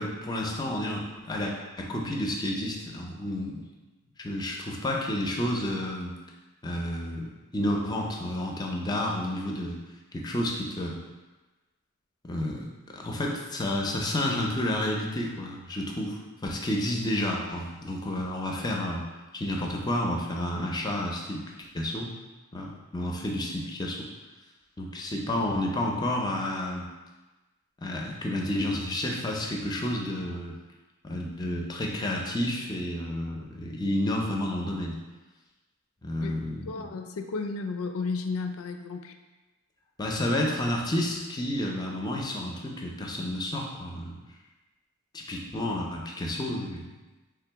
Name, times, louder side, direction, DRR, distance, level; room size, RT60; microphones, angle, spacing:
voice 1, 0.0-3.6 4.2-6.1 6.6-9.8 10.1-11.0 12.2-19.1 19.3-22.1 22.5-24.1 24.8-26.9 27.8-30.6 31.0-35.0 36.0-36.9 40.0-44.2 45.1-46.9, left 1 dB, 20° left, 0 dB, 0.4 m, -30 dB
voice 2, 36.7-39.1, left 4 dB, 85° left, 6 dB, 0.4 m, -33 dB
3.6 x 2.9 x 4.5 m, 1.2 s
head